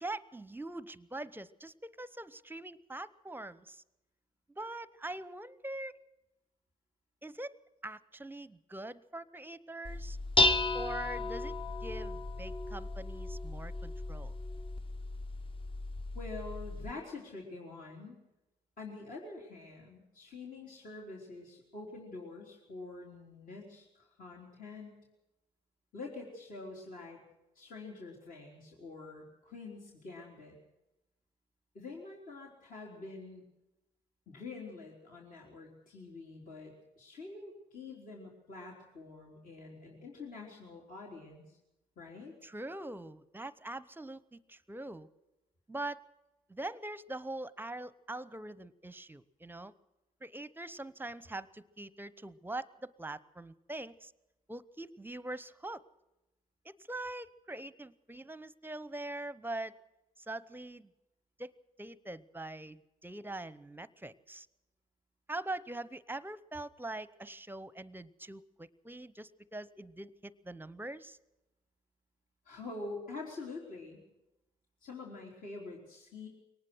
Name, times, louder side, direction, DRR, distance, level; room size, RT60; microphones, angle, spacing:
voice 1, 0.0-3.8 4.5-6.0 7.2-7.5 7.8-10.2 10.7-14.3 42.4-45.1 45.7-46.0 46.5-49.7 50.2-54.1 54.5-55.8 56.6-59.7 60.3-60.9 61.4-61.5 61.8-64.5 65.3-71.2, right 2 dB, 10° right, 18 dB, 0.9 m, -43 dB
Dishes pots and pans, 9.8-16.9, left 2 dB, 30° left, 1.1 m, -34 dB
voice 2, 16.1-18.2 18.8-25.0 25.9-27.2 27.5-30.5 31.7-33.4 34.3-41.6 42.0-42.3 72.4-74.0 74.8-76.3, left 3 dB, 50° left, -1 dB, 3.9 m, -46 dB
22.5 x 19.0 x 6.3 m, 0.95 s
hypercardioid pair, 50°, 18 cm